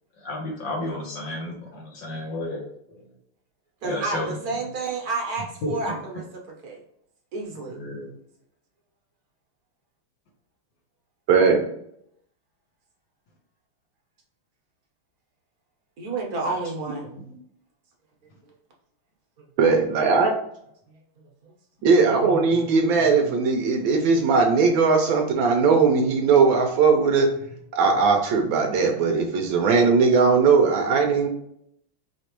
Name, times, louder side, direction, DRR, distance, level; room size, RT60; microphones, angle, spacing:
voice 1, 0.2-2.7 3.8-4.4 5.6-6.0 7.7-8.1 17.2-17.4 22.5-22.6, left 1 dB, 60° left, -1 dB, 1.6 m, -32 dB
voice 2, 3.8-6.2 6.6-6.8 7.3-7.8 16.0-17.1, right 3 dB, 55° right, -1 dB, 1.2 m, -30 dB
voice 3, 11.3-11.7 19.6-20.3 21.8-27.3 27.7-31.3, right 4 dB, 75° right, 3 dB, 1.3 m, -19 dB
5.0 x 3.1 x 2.9 m, 0.72 s
omnidirectional pair, 2.4 m